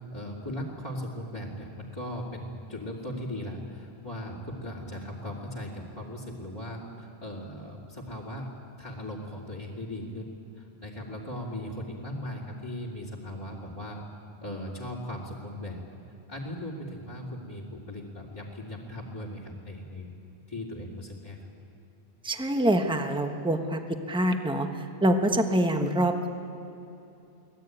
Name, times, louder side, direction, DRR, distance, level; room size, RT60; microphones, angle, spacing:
voice 1, 0.1-10.3 10.6-14.0 14.4-15.8 16.3-20.1 20.5-21.4, left 1 dB, 20° left, -6 dB, 2.5 m, -38 dB
voice 2, 22.2-26.3, right 1 dB, 5° right, 5 dB, 1.2 m, -25 dB
24.5 x 18.5 x 9.2 m, 2.8 s
omnidirectional pair, 1.1 m